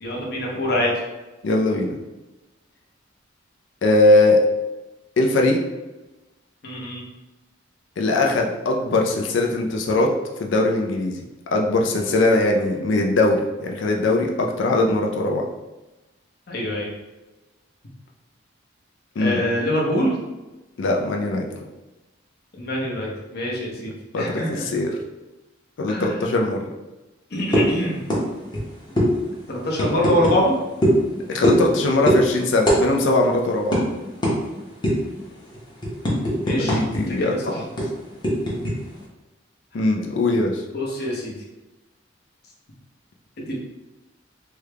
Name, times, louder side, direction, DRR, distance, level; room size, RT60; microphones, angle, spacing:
voice 1, 0.0-0.9 6.6-7.0 16.5-16.9 19.2-20.1 22.6-24.7 25.9-26.2 27.3-28.0 29.5-30.6 36.4-37.6 40.7-41.3 43.4-43.6, left 1 dB, 55° left, -3 dB, 0.8 m, -24 dB
voice 2, 1.4-2.0 3.8-4.4 5.2-5.6 8.0-10.1 10.4-11.2 11.5-15.5 19.2-19.4 20.8-21.4 24.1-24.9 25.8-26.7 31.3-33.7 36.6-37.3 39.7-40.6, left 2 dB, 70° left, 1 dB, 0.4 m, -20 dB
sound 1, 27.5-27.7 28.1-28.2 28.5-28.6 29.0-29.1 29.8-30.4 30.8-31.0 31.4-31.7 32.1-32.2 32.7-32.8 33.1-33.2 33.7-33.8 34.2-34.4 34.8-35.1 35.5-37.0 37.3-37.4 37.8-38.7, equal, 25° left, 0.8 m, -20 dB
3.5 x 2.2 x 3.2 m, 1.1 s
head